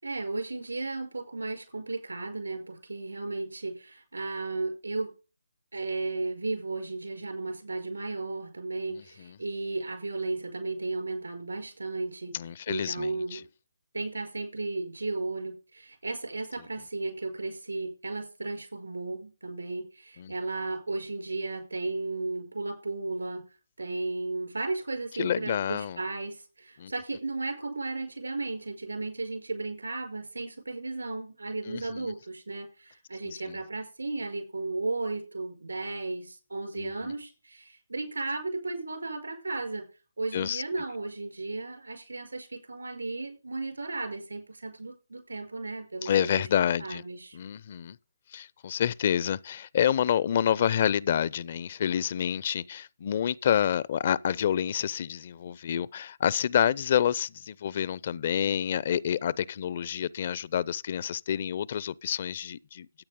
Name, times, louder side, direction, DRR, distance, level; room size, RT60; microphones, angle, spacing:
voice 1, 0.0-5.1 5.7-12.3 12.7-13.4 13.9-39.8 40.2-47.4, right 3 dB, 85° right, 5.4 m, -34 dB
voice 2, 8.9-9.3 12.3-13.4 20.2-20.3 25.2-26.0 26.8-26.9 31.7-32.1 33.3-33.6 36.8-37.1 40.3-40.6 46.0-47.0 47.3-48.0 48.3-62.9, left 9 dB, 40° left, 0.4 m, -28 dB
13.5 x 8.9 x 3.7 m
figure-of-eight pair, 150°, 0 cm